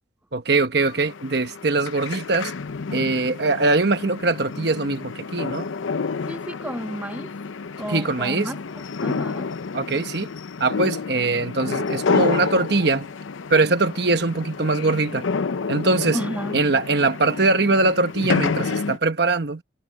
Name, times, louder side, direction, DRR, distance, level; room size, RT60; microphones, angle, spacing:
voice 1, 0.3-2.5 2.9-5.7 7.9-8.5 9.7-10.3 10.6-13.1 13.5-15.2 15.7-16.2 16.5-19.6, right 3 dB, 55° right, 1.1 m, -22 dB
sound 1, 0.8-19.0, left 4 dB, 90° left, 0.6 m, -29 dB
voice 2, 6.3-7.3 7.8-9.5 16.1-16.7, equal, 10° right, 1.7 m, -32 dB
head